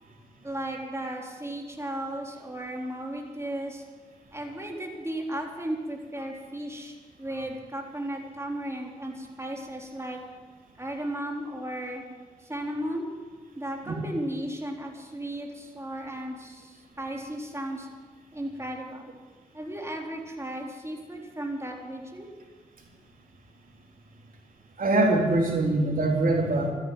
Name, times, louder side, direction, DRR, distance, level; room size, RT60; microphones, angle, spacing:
voice 1, 0.4-3.8 4.3-10.2 10.8-12.0 12.4-13.1 13.6-17.9 18.3-19.1 19.5-22.3, right 1 dB, 15° right, 0 dB, 4.0 m, -35 dB
voice 2, 24.8-26.7, right 2 dB, 65° right, 0 dB, 3.7 m, -23 dB
13.5 x 11.0 x 9.5 m, 1.4 s
supercardioid pair, 40°, 16 cm